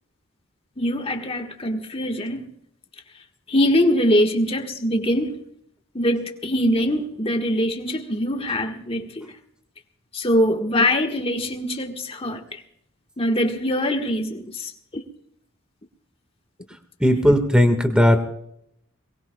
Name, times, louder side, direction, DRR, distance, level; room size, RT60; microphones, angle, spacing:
voice 1, 0.8-2.5 3.5-5.4 5.9-9.3 10.1-12.6 13.2-15.0, equal, 25° left, 1.6 m, -23 dB
voice 2, 17.0-18.2, equal, 5° right, 1.8 m, -16 dB
22.5 x 22.5 x 2.4 m
head